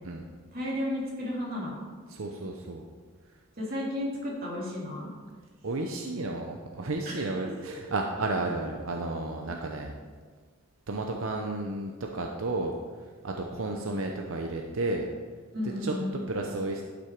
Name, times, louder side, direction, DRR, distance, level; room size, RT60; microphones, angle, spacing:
voice 1, 0.5-1.8 3.6-5.1 7.1-7.2 7.6-7.7 13.2-13.3 15.5-16.2, left 1 dB, 45° right, -4 dB, 2.8 m, -33 dB
voice 2, 2.1-2.8 5.6-9.9 10.9-12.7 13.2-15.1 15.8-15.9 16.3-16.8, right 2 dB, 80° right, 2 dB, 0.7 m, -32 dB
12.0 x 6.2 x 4.6 m, 1.5 s
head